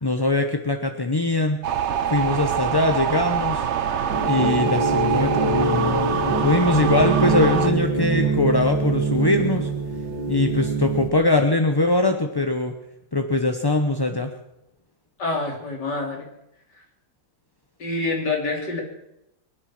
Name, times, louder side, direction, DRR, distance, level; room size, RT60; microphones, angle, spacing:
voice 1, 0.0-1.6 2.1-3.7 4.2-9.7 10.3-12.8 13.1-14.3, left 2 dB, 25° left, 5 dB, 0.6 m, -22 dB
sound 1, 1.6-7.7, right 8 dB, 55° right, 0.9 m, -25 dB
sound 2, 4.1-11.1, right 3 dB, 80° right, 2.1 m, -24 dB
voice 2, 15.2-16.3 17.8-18.8, left 3 dB, 65° left, 1 dB, 3.8 m, -26 dB
24.0 x 9.9 x 6.1 m, 0.83 s
omnidirectional pair, 1.9 m